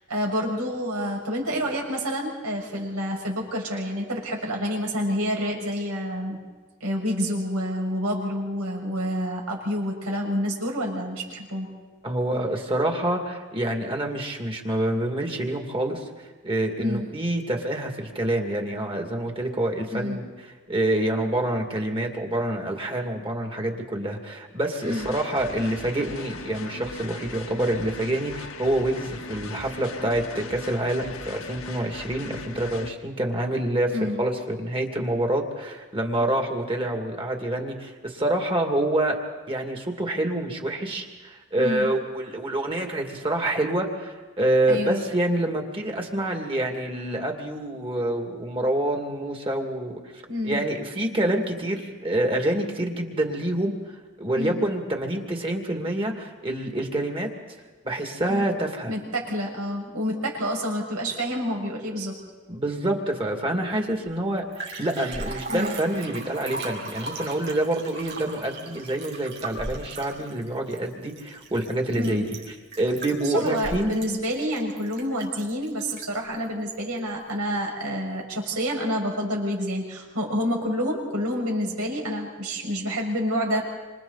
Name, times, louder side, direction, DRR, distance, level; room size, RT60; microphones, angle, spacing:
voice 1, 0.1-6.4 6.8-11.7 16.8-17.1 19.9-20.2 24.8-25.1 33.9-34.2 36.2-36.3 41.6-41.9 44.7-45.0 50.3-50.6 51.2-51.3 54.3-54.6 58.3-58.4 58.9-62.1 65.5-65.7 72.0-72.2 73.2-83.6, equal, 85° right, -1 dB, 6.3 m, -28 dB
voice 2, 12.0-39.2 39.5-50.0 50.4-57.3 57.8-58.9 62.5-72.2 72.8-73.9, right 1 dB, 25° right, 2 dB, 2.3 m, -27 dB
sound 1, 24.8-32.9, left 3 dB, 65° left, 1.5 m, -39 dB
Liquid, 64.1-64.2 64.4-76.3 76.7-76.8, right 2 dB, 50° right, 5.5 m, -37 dB
27.5 x 27.0 x 4.1 m, 1.3 s
head